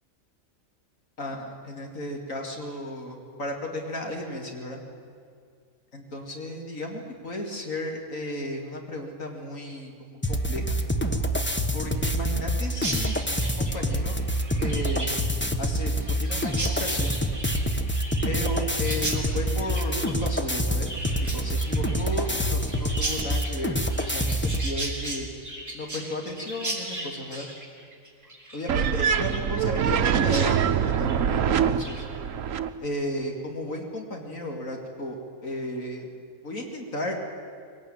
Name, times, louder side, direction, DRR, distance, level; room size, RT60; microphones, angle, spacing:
voice 1, 1.2-4.8 5.9-10.8 11.7-14.2 14.6-15.2 15.6-17.2 18.2-20.9 21.2-25.3 25.7-27.5 28.5-32.0 32.8-36.1 36.4-37.2, left 1 dB, 70° left, 1 dB, 2.7 m, -34 dB
sound 1, 10.2-24.7, equal, 10° left, 1.0 m, -27 dB
Chirp tweet, 12.7-30.0 30.3-30.5 30.8-31.2 31.6-32.0, right 1 dB, 10° right, 3.5 m, -37 dB
sound 2, 28.7-32.7, right 8 dB, 65° right, 1.1 m, -24 dB
22.5 x 18.0 x 8.9 m, 2.2 s
omnidirectional pair, 1.5 m